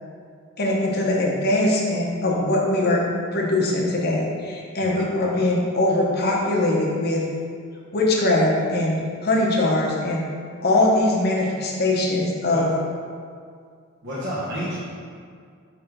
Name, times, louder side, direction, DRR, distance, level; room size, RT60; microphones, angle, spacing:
voice 1, 0.6-3.0 3.3-7.2 7.9-10.2 10.6-12.7, left 2 dB, 50° left, -2 dB, 0.9 m, -21 dB
voice 2, 14.0-14.8, equal, 55° right, -11 dB, 1.3 m, -30 dB
5.7 x 3.3 x 5.2 m, 2.2 s
head